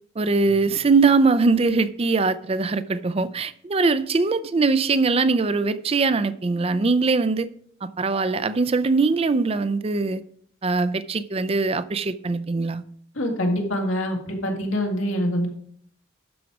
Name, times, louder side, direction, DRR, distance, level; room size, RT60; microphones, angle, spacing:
voice 1, 0.2-7.5 7.8-10.2 10.6-12.8, right 4 dB, 30° right, 0.4 m, -21 dB
voice 2, 13.1-15.5, equal, 85° left, 2.3 m, -25 dB
12.5 x 4.8 x 6.1 m
head